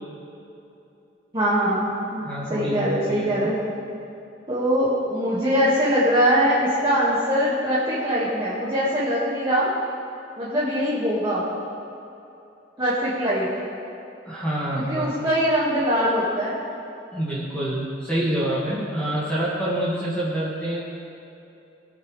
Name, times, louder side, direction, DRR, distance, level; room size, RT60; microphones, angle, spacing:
voice 1, 1.3-3.6 4.5-9.7 10.4-11.4 12.8-13.5 14.7-16.6, equal, 25° right, -10 dB, 2.2 m, -22 dB
voice 2, 2.2-3.5 14.2-15.2 17.1-20.8, right 1 dB, 10° left, -10 dB, 2.2 m, -27 dB
22.0 x 8.7 x 3.5 m, 2.8 s
head